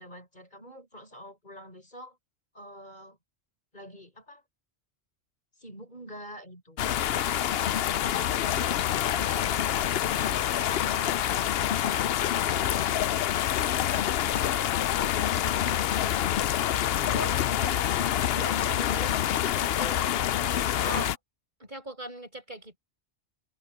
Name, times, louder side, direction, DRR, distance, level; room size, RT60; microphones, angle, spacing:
voice 1, 0.0-2.2 2.5-3.2 3.7-4.4 5.6-7.1 17.5-17.9, equal, 40° left, 6.8 m, -47 dB
sound 1, 6.8-21.2, left 11 dB, 65° left, 0.8 m, -26 dB
voice 2, 17.1-17.7 18.3-20.0 20.8-21.2 21.6-22.8, right 2 dB, 45° right, 6.8 m, -40 dB
omnidirectional pair, 1.1 m